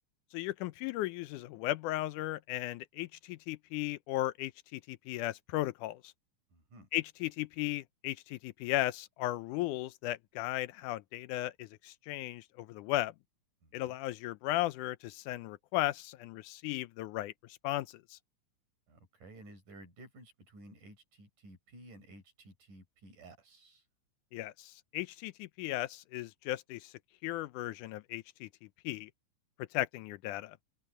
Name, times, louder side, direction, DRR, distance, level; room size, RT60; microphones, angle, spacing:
voice 1, 0.3-6.1 6.9-13.1 13.7-18.2 24.3-26.9 27.2-28.5 28.8-29.1 29.6-30.6, left 16 dB, 80° left, 2.1 m, -36 dB
voice 2, 6.5-6.9 13.6-14.0 18.9-23.9, right 1 dB, 80° right, 8.4 m, -54 dB
omnidirectional pair, 3.6 m